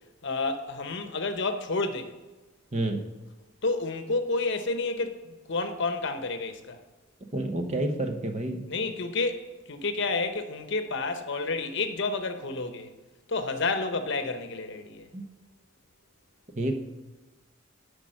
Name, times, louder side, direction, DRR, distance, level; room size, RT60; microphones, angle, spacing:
voice 1, 0.2-2.1 3.6-6.8 8.7-12.9 13.3-15.1, left 3 dB, 60° left, 0.9 m, -30 dB
voice 2, 7.3-8.6 15.1-15.2 16.6-16.7, right 1 dB, 35° right, 0.9 m, -29 dB
10.0 x 5.1 x 6.4 m
head